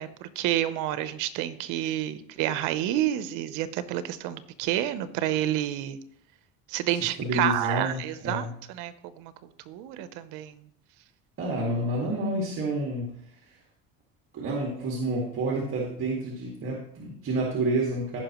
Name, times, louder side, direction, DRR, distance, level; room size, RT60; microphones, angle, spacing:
voice 1, 0.0-6.0 6.7-9.3 9.7-10.6, right 12 dB, 80° right, 13 dB, 0.8 m, -29 dB
voice 2, 7.2-8.5 11.4-13.2 13.5-13.6 14.3-18.2, right 1 dB, 45° right, -2 dB, 2.1 m, -29 dB
15.5 x 5.6 x 3.1 m, 0.70 s
cardioid pair, 110°, 30 cm